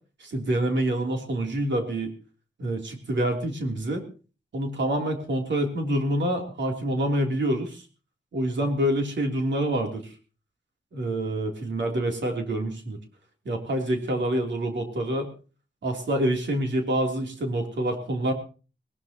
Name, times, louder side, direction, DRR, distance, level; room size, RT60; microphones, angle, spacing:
voice 1, 0.2-2.1 2.6-4.0 4.5-7.9 8.3-10.2 10.9-13.0 13.5-15.3 15.8-18.3, right 1 dB, 75° right, 3 dB, 3.3 m, -27 dB
19.5 x 19.5 x 3.0 m, 0.36 s
wide cardioid pair, 135°, 19 cm